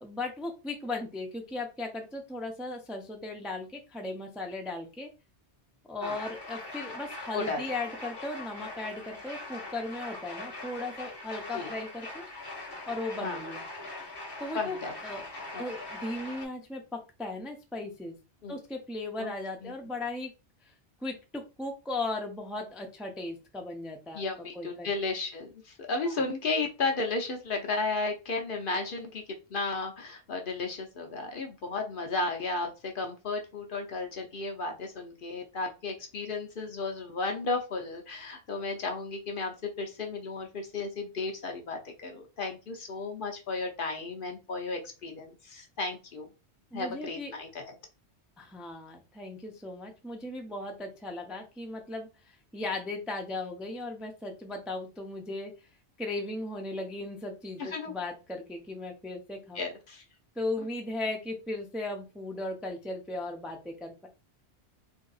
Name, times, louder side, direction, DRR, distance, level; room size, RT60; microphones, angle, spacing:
voice 1, 0.0-5.1 5.9-12.3 12.9-13.6 14.4-15.2 15.6-18.2 18.5-20.3 20.6-20.7 21.0-24.9 26.0-26.2 46.7-47.3 48.4-55.5 56.0-59.6 60.4-64.1, left 2 dB, ahead, 2 dB, 0.4 m, -37 dB
sound 1, 6.0-16.4, left 2 dB, 25° left, 0.8 m, -42 dB
voice 2, 14.5-15.0 15.5-15.6 18.4-18.6 19.2-19.3 19.6-19.7 24.1-29.2 29.5-46.3 46.7-47.7 57.6-57.9 59.5-60.0, left 3 dB, 55° left, 4 dB, 0.7 m, -34 dB
2.8 x 2.6 x 3.9 m, 0.30 s
omnidirectional pair, 1.2 m